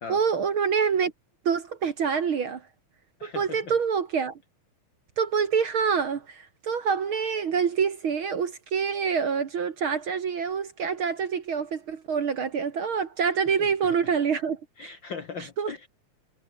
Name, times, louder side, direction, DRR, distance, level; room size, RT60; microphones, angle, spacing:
voice 1, 0.1-1.1 1.5-2.7 3.2-4.4 5.2-14.9 15.6-15.7, right 6 dB, 50° right, 1.9 m, -26 dB
voice 2, 3.2-3.7 13.5-13.9 14.8-15.9, left 5 dB, 50° left, 1.7 m, -39 dB
omnidirectional pair, 3.5 m